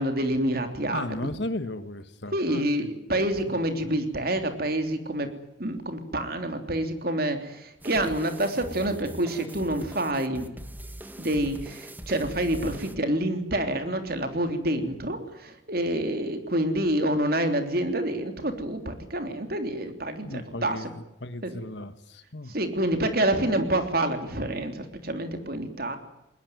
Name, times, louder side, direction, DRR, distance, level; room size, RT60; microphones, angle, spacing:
voice 1, 0.0-1.3 2.3-5.3 5.6-10.4 11.2-20.9 21.4-21.5 22.5-26.0, right 1 dB, 50° right, 6 dB, 3.4 m, -27 dB
voice 2, 0.9-2.9 3.2-3.6 20.2-20.9 21.2-22.5, left 2 dB, 65° left, 11 dB, 1.5 m, -35 dB
sound 1, 7.8-12.9, right 1 dB, 10° right, 1.3 m, -42 dB
21.0 x 20.5 x 9.4 m, 0.90 s
head